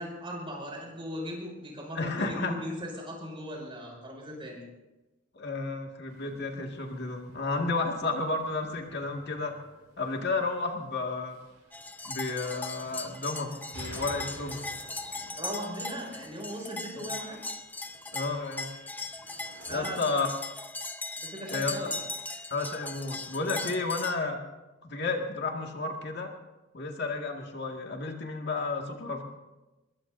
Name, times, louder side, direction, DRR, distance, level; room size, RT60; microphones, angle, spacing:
voice 1, 0.0-4.6 15.4-17.4 19.7-20.3 21.2-21.9, equal, 25° right, -1 dB, 6.0 m, -38 dB
voice 2, 2.0-2.5 5.3-9.5 10.0-11.4 12.1-14.7 17.0-17.1 18.1-18.7 19.7-20.3 21.5-21.9 22.5-24.4 24.8-26.3 26.7-29.2, left 3 dB, 55° left, 2 dB, 2.0 m, -32 dB
sound 1, 6.1-19.8, right 1 dB, 80° right, 4.5 m, -52 dB
sound 2, 11.7-24.2, left 2 dB, 10° left, 0.8 m, -39 dB
23.5 x 21.5 x 2.7 m, 1.1 s
head